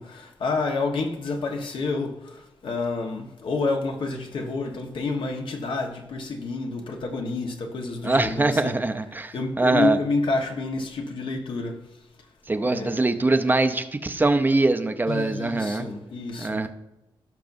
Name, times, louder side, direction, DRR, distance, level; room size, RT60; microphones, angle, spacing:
voice 1, 0.0-8.8 9.3-11.8 12.6-13.0 15.1-16.6, left 3 dB, 65° left, 1.2 m, -29 dB
voice 2, 8.0-10.0 12.5-15.9 16.4-16.7, right 2 dB, 20° right, 0.6 m, -23 dB
16.5 x 6.0 x 2.6 m
wide cardioid pair, 125°, 9 cm